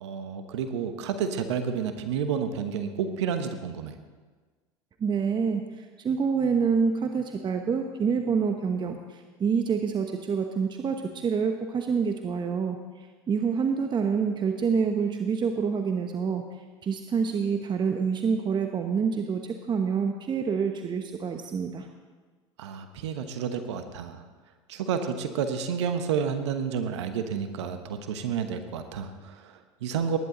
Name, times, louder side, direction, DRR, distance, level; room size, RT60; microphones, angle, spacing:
voice 1, 0.0-3.9 22.6-24.2 24.7-30.2, right 7 dB, 75° right, 8 dB, 1.1 m, -30 dB
voice 2, 5.0-16.4 16.8-21.9, right 6 dB, 30° right, 5 dB, 1.0 m, -27 dB
19.5 x 10.5 x 3.9 m, 1.4 s
hypercardioid pair, 80°, 15 cm